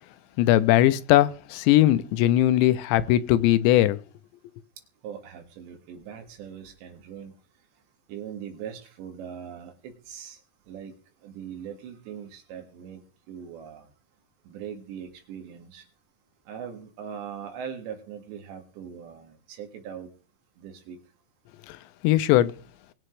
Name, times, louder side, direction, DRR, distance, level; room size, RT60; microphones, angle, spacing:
voice 1, 0.4-4.0 21.7-21.8 22.0-22.5, left 14 dB, 85° left, 2.9 m, -20 dB
voice 2, 5.0-7.3 8.1-10.4 10.7-10.9 11.2-13.0 13.3-13.9 14.5-15.8 16.5-20.1 20.6-21.0, right 8 dB, 80° right, 4.2 m, -40 dB
22.0 x 7.9 x 3.2 m
omnidirectional pair, 5.0 m